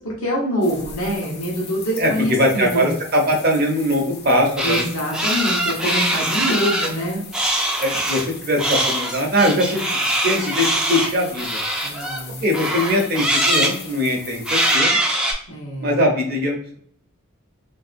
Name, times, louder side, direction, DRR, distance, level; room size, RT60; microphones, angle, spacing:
voice 1, 0.0-2.9 4.6-7.2 11.8-12.4 15.5-16.1, equal, 75° left, -3 dB, 1.0 m, -25 dB
sound 1, 0.6-14.8, left 5 dB, 45° left, 0.5 m, -39 dB
voice 2, 2.0-4.8 6.8-6.9 7.8-9.8 10.2-11.6 12.4-15.0 15.8-16.8, equal, 45° right, 2 dB, 0.6 m, -21 dB
sound 2, 4.6-4.9 5.1-6.9 7.3-8.3 8.6-12.2 12.5-13.8 14.5-15.3, right 1 dB, 5° right, 0.3 m, -22 dB
3.1 x 2.6 x 2.5 m, 0.63 s
head